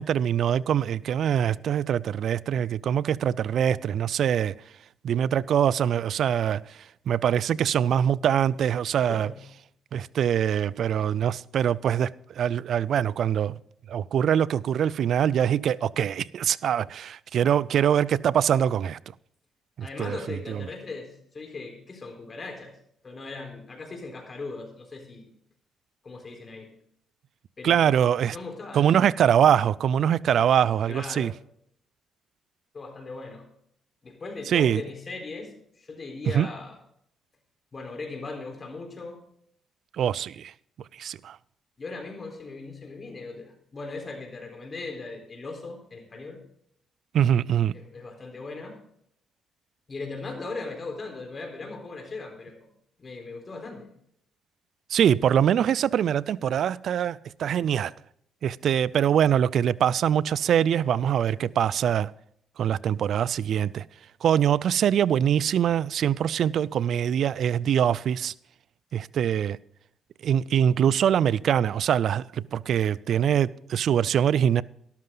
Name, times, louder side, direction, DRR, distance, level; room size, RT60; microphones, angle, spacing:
voice 1, 0.0-4.5 5.0-6.6 7.1-9.3 9.9-13.6 13.9-19.0 19.8-20.2 20.5-20.6 27.6-28.4 28.7-31.3 34.5-34.8 36.3-36.5 40.0-40.5 41.0-41.4 47.1-47.7 54.9-57.9 58.4-62.1 62.6-63.8 64.2-68.3 68.9-69.6 70.2-74.6, right 9 dB, 65° right, 0.4 m, -23 dB
voice 2, 9.1-9.4 19.8-22.7 23.0-25.2 26.0-26.7 27.6-29.0 30.9-31.3 32.7-33.5 34.0-36.8 37.7-39.2 41.8-46.4 47.7-48.8 49.9-52.7 53.0-53.9, left 3 dB, 35° left, 4.0 m, -38 dB
13.0 x 12.0 x 3.9 m
cardioid pair, 90°, 0 cm